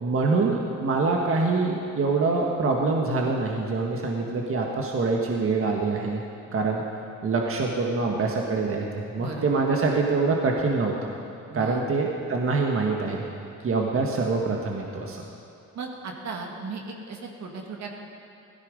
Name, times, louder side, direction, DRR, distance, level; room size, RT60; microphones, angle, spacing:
voice 1, 0.0-6.2 6.5-6.8 7.2-11.1 11.5-13.2 13.6-15.2, right 3 dB, 45° right, 0 dB, 1.6 m, -25 dB
voice 2, 11.5-11.8 15.7-17.9, right 4 dB, 65° right, 1 dB, 2.1 m, -36 dB
16.0 x 14.0 x 5.2 m, 2.6 s
cardioid pair, 90°, 30 cm